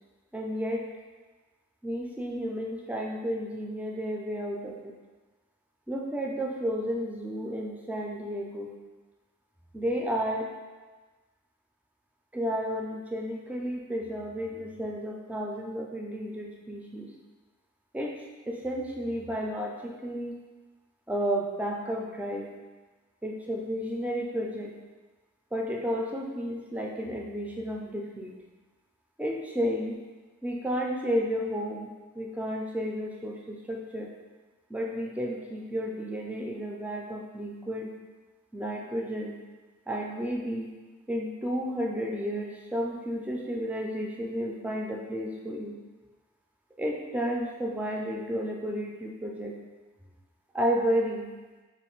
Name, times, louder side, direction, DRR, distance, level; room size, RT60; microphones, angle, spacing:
voice 1, 0.3-0.9 1.8-4.9 5.9-8.8 9.7-10.5 12.3-17.1 17.9-20.4 21.1-22.5 23.2-24.7 25.5-28.3 29.2-30.0 30.4-34.1 34.7-37.9 38.5-39.4 39.9-40.7 41.1-45.8 46.8-49.6 50.5-51.3, equal, 5° right, 0 dB, 0.3 m, -32 dB
3.2 x 2.5 x 4.4 m, 1.3 s
head